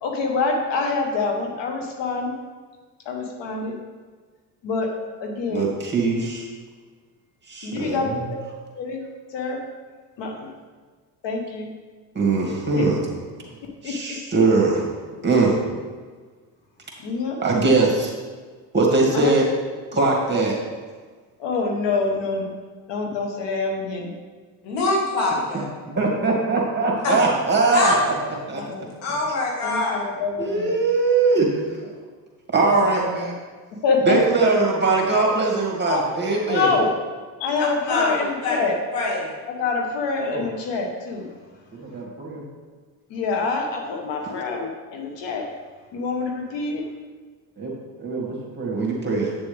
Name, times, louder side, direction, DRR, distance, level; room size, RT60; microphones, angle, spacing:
voice 1, 0.0-2.3 3.0-3.8 4.6-4.9 5.2-5.7 7.6-8.4 8.7-9.0 9.3-9.6 10.2-10.5 11.2-11.7 12.7-12.9 13.6-14.2 17.0-17.4 19.1-19.3 21.4-22.5 22.9-24.1 28.5-28.9 29.6-30.7 32.6-33.3 33.8-34.2 35.9-36.0 36.5-36.9 37.4-38.8 39.5-41.3 42.0-42.1 43.1-45.5 45.9-46.8, left 4 dB, 65° left, 2 dB, 1.4 m, -26 dB
voice 2, 5.5-6.5 7.5-8.1 12.1-13.0 13.8-14.8 15.2-15.5 17.4-18.1 18.7-19.5 19.9-20.5 25.9-27.9 28.5-28.6 30.4-31.5 32.5-33.0 34.1-36.7 40.3-40.4 41.7-42.4 47.6-47.7 48.0-49.3, right 3 dB, 20° right, -1 dB, 2.4 m, -21 dB
voice 3, 24.7-25.7 27.0-27.1 27.7-28.0 29.0-30.0 37.6-38.6 38.9-39.3, left 2 dB, 85° left, -2 dB, 2.3 m, -24 dB
8.8 x 7.1 x 3.5 m, 1.5 s
supercardioid pair, 85°, 46 cm